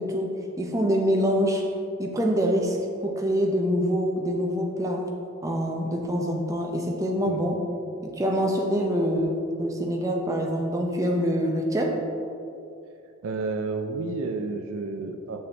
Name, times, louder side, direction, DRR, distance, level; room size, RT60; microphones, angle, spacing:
voice 1, 0.0-1.7 2.0-5.1 5.4-7.6 8.0-12.0, equal, 15° right, 1 dB, 0.6 m, -25 dB
voice 2, 13.2-15.4, right 3 dB, 65° right, 5 dB, 0.4 m, -31 dB
7.3 x 6.2 x 3.4 m, 2.6 s
head